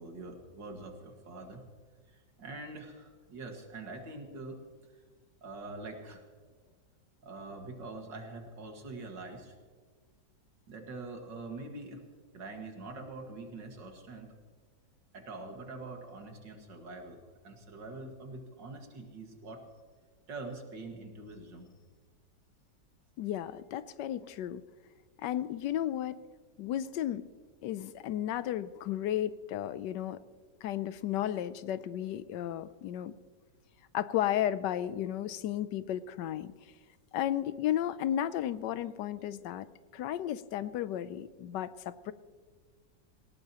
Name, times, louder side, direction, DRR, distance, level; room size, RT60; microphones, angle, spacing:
voice 1, 0.0-1.7 2.1-4.6 4.9-5.0 5.4-6.2 7.2-9.6 10.7-12.0 12.3-14.3 15.1-19.6 20.3-21.7, right 2 dB, 80° right, 3 dB, 2.6 m, -44 dB
voice 2, 23.2-24.6 25.2-26.2 26.6-27.3 27.6-30.2 30.6-33.2 33.9-36.5 37.1-39.7 39.9-42.1, left 11 dB, 80° left, 15 dB, 1.2 m, -33 dB
18.5 x 17.5 x 2.9 m, 1.5 s
omnidirectional pair, 1.9 m